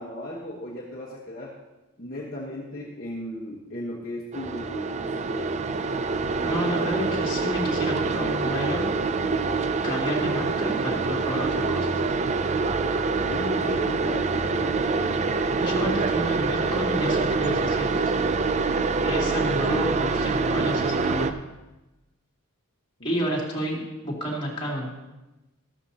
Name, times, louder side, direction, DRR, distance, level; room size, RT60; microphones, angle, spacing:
voice 1, 0.0-1.6 2.0-5.6 13.3-15.2 23.0-23.5, left 1 dB, 40° left, -4 dB, 1.3 m, -36 dB
sound 1, 4.3-21.3, right 4 dB, 30° right, 0.4 m, -25 dB
voice 2, 6.4-8.9 9.8-12.0 15.6-18.1 19.0-21.4 23.0-24.9, equal, 25° left, -4 dB, 2.9 m, -30 dB
14.0 x 13.0 x 2.9 m, 1.0 s
head